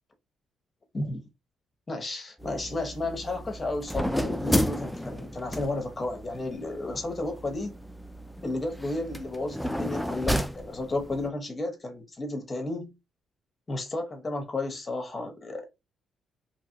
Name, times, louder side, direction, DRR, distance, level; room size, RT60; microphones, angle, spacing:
voice 1, 1.9-7.8 8.4-12.9 13.7-15.7, left 2 dB, 30° left, 1.0 m, -33 dB
sound 1, 2.4-11.3, equal, 5° left, 0.4 m, -32 dB
2.8 x 2.4 x 2.7 m
cardioid pair, 90°, 0 cm